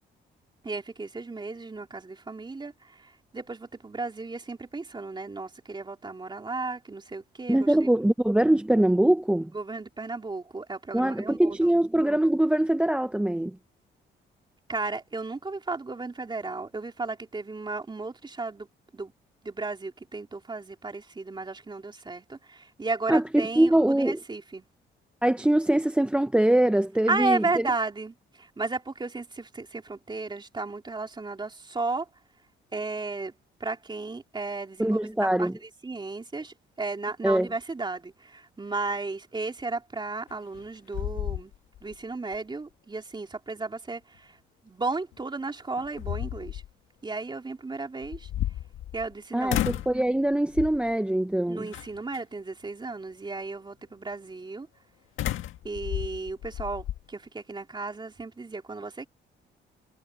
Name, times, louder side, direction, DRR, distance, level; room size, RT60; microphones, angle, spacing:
voice 1, 0.6-8.1 9.5-11.8 14.7-18.7 18.9-19.1 19.4-24.7 27.1-32.1 32.7-33.3 33.6-41.5 41.8-44.4 44.6-46.6 47.0-48.3 48.9-49.6 51.5-54.7 55.6-59.1, right 3 dB, 25° right, 3.5 m, -34 dB
voice 2, 7.5-9.5 10.9-13.6 23.1-24.2 25.2-27.7 34.8-35.5 37.2-37.5 49.3-51.7, right 1 dB, 5° right, 0.7 m, -23 dB
sound 1, 40.3-40.6 40.9-41.9 42.3-42.4 45.1-45.2 45.8-46.7 48.0-49.1 49.5-50.0 50.5-50.9 51.7-52.2 55.2-57.0, left 13 dB, 85° left, 1.7 m, -32 dB
cardioid pair, 90°, 20 cm